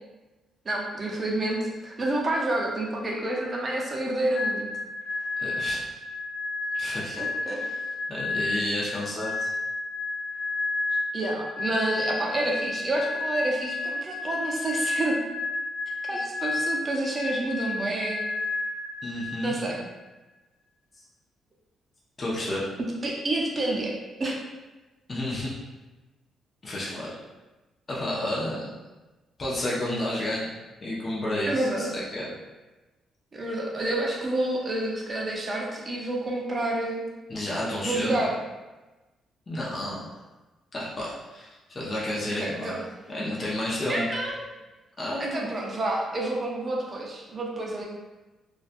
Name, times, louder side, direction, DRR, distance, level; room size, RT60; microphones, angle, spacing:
voice 1, 0.7-4.7 5.2-5.3 7.2-7.6 11.1-15.2 16.0-18.2 19.4-19.8 23.0-23.9 24.2-24.3 31.5-31.9 33.3-37.0 37.8-38.3 42.4-42.8 43.9-44.4 45.2-47.8, right 2 dB, 30° right, -2 dB, 0.6 m, -29 dB
sound 1, 4.3-19.9, left 3 dB, 65° left, 1.0 m, -31 dB
voice 2, 5.4-5.9 6.7-7.2 7.5-7.8 8.1-9.5 19.0-19.6 22.2-22.6 25.1-25.5 26.6-27.1 27.9-28.6 29.4-30.5 30.8-32.3 37.3-38.3 39.5-40.1 40.7-42.8 43.1-44.1 45.0-45.5, left 1 dB, 30° left, -6 dB, 0.6 m, -31 dB
2.5 x 2.2 x 2.5 m, 1.1 s
cardioid pair, 100°, 0 cm